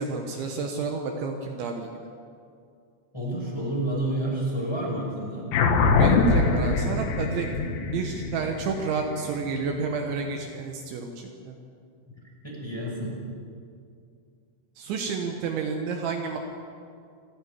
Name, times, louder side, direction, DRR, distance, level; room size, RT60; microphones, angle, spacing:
voice 1, 0.0-1.9 5.9-7.5 7.9-11.6 14.8-16.4, right 5 dB, 70° right, 3 dB, 3.3 m, -30 dB
voice 2, 3.1-5.5 12.1-12.2 12.4-13.1, right 1 dB, 5° left, -4 dB, 5.0 m, -29 dB
sound 1, 5.5-10.3, left 4 dB, 65° left, 2.7 m, -24 dB
26.5 x 9.9 x 10.0 m, 2.4 s
omnidirectional pair, 5.8 m